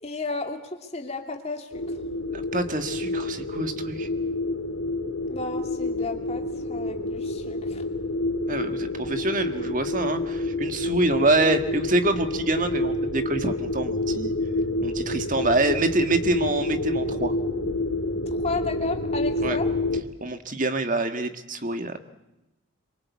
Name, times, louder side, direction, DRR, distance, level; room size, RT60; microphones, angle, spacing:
voice 1, 0.0-2.0 5.3-7.8 18.3-19.7, left 3 dB, 30° left, 4 dB, 2.7 m, -33 dB
sound 1, 1.7-20.0, left 2 dB, 70° left, 2.5 m, -28 dB
voice 2, 2.3-4.1 8.5-14.3 14.8-17.3 19.4-19.6 20.2-22.0, right 2 dB, 35° right, 8 dB, 1.6 m, -26 dB
26.5 x 24.0 x 8.4 m, 0.95 s
head